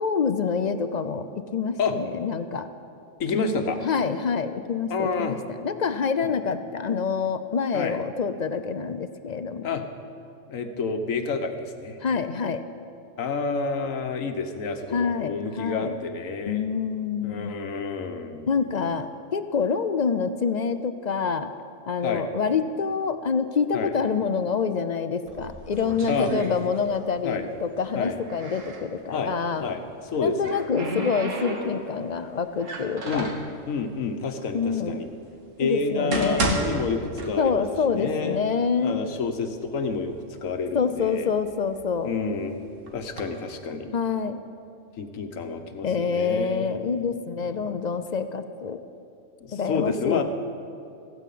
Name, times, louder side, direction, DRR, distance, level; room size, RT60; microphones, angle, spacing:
voice 1, 0.0-2.7 3.8-9.8 12.0-12.6 14.9-15.9 16.5-17.5 18.5-21.5 21.9-29.7 30.2-33.3 34.5-35.0 35.6-36.4 37.4-39.0 40.7-42.1 43.9-44.4 45.8-48.8 49.5-50.2, left 5 dB, 55° left, 10 dB, 0.5 m, -26 dB
voice 2, 3.2-3.8 4.9-5.4 7.7-8.0 9.6-9.8 10.5-12.0 13.2-16.7 17.2-18.6 22.0-22.2 23.7-23.9 26.1-26.3 27.2-27.4 27.9-28.2 29.1-29.3 29.6-30.7 33.0-33.3 33.7-35.1 35.6-38.5 38.8-41.3 42.0-42.6 42.9-43.9 45.0-46.8 47.4-47.6 49.4-50.2, left 4 dB, 80° left, 7 dB, 1.4 m, -29 dB
sound 1, 25.3-27.2 27.4-28.9 30.0-32.0 32.6-33.5 34.3-34.4 35.0-35.1 35.8-37.8 38.1-38.2 38.9-39.0 39.4-40.0 40.6-42.2 42.9-43.2, right 2 dB, 75° right, 1.8 m, -32 dB
14.5 x 9.4 x 8.4 m, 2.5 s
omnidirectional pair, 1.4 m